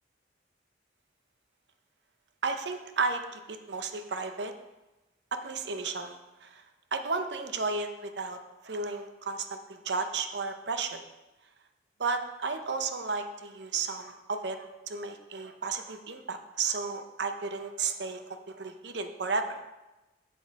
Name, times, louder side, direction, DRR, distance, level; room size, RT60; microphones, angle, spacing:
voice 1, 2.4-4.5 5.3-6.6 6.9-8.4 8.6-11.0 12.0-19.6, right 4 dB, 75° right, 7 dB, 0.8 m, -33 dB
7.9 x 7.7 x 4.6 m, 1.0 s
head